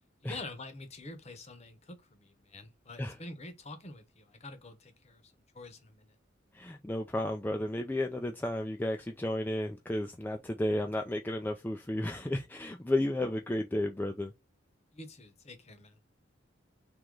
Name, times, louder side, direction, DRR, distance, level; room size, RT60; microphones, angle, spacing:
voice 1, 0.2-6.2 14.9-16.0, left 2 dB, 35° left, 0.9 m, -47 dB
voice 2, 6.5-14.3, left 1 dB, 10° left, 0.4 m, -33 dB
3.8 x 2.9 x 4.6 m
head